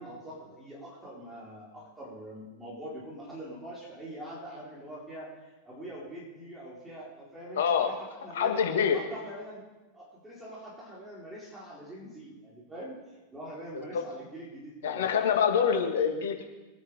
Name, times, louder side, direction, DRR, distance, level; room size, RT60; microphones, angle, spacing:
voice 1, 0.0-8.6 8.9-9.6 9.9-15.1, right 1 dB, 10° right, -5 dB, 4.4 m, -44 dB
voice 2, 7.6-7.9 8.3-9.0 13.7-13.8 14.8-16.4, left 7 dB, 60° left, 4 dB, 1.9 m, -25 dB
21.5 x 9.9 x 4.9 m, 1.1 s
figure-of-eight pair, 90°, 0 cm